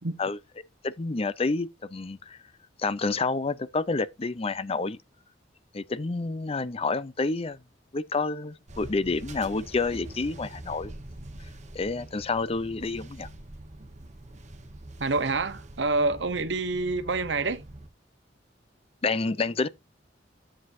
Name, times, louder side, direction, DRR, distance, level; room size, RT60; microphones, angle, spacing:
voice 1, 0.8-2.4 2.8-5.0 5.7-7.6 7.9-10.9 11.7-13.3 19.0-19.7, left 3 dB, 35° left, 0.5 m, -29 dB
sound 1, 8.7-17.9, right 1 dB, 40° right, 1.2 m, -44 dB
voice 2, 15.0-17.6, right 3 dB, 75° right, 1.0 m, -27 dB
10.0 x 7.6 x 2.7 m
head